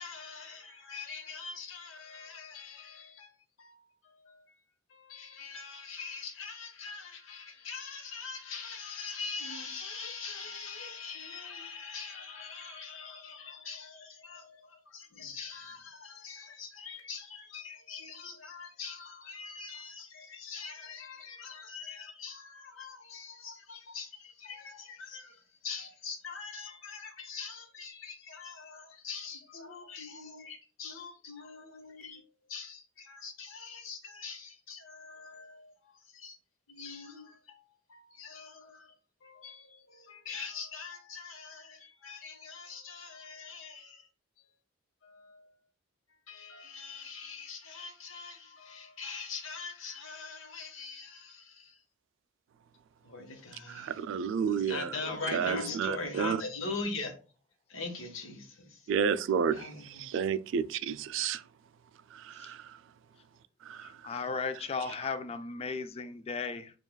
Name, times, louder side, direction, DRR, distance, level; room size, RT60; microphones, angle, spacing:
voice 1, 0.0-4.4 4.9-36.4 36.7-38.9 39.2-44.1 45.0-45.5 46.3-51.8 53.0-54.0 54.5-57.1 57.7-58.9 59.5-60.1, left 4 dB, 90° left, 1.0 m, -43 dB
voice 2, 53.8-54.9 55.3-56.4 58.9-59.6 60.1-61.4 62.4-62.6 63.7-63.8, right 7 dB, 65° right, 0.3 m, -30 dB
voice 3, 63.8-66.7, left 4 dB, 30° left, 0.3 m, -36 dB
7.0 x 2.4 x 2.2 m
head